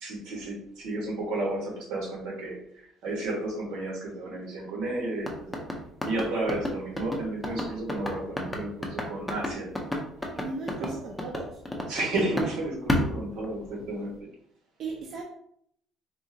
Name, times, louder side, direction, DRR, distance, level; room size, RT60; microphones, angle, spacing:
voice 1, 0.0-5.6 6.0-9.7 10.8-11.0 11.9-14.1, right 2 dB, 85° right, -1 dB, 1.2 m, -32 dB
sound 1, 5.2-12.5 12.9-14.0, left 1 dB, 5° left, 0.5 m, -30 dB
voice 2, 10.4-11.6 14.8-15.2, right 3 dB, 45° right, -1 dB, 0.5 m, -37 dB
3.7 x 2.4 x 2.7 m, 0.69 s
cardioid pair, 160°, 0 cm